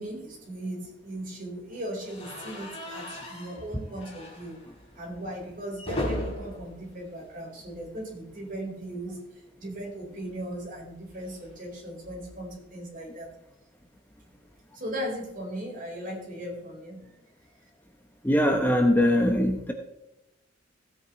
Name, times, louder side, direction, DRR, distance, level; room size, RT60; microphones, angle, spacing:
voice 1, 0.0-4.6 4.9-13.3 14.7-17.1, right 1 dB, 45° right, -2 dB, 4.4 m, -37 dB
sound 1, 2.0-8.0 8.3-8.5 8.8-8.9 10.2-12.5, left 1 dB, 30° left, 3.6 m, -39 dB
voice 2, 18.2-19.7, left 1 dB, 10° left, 4 dB, 1.0 m, -22 dB
16.0 x 8.9 x 3.2 m, 0.94 s
head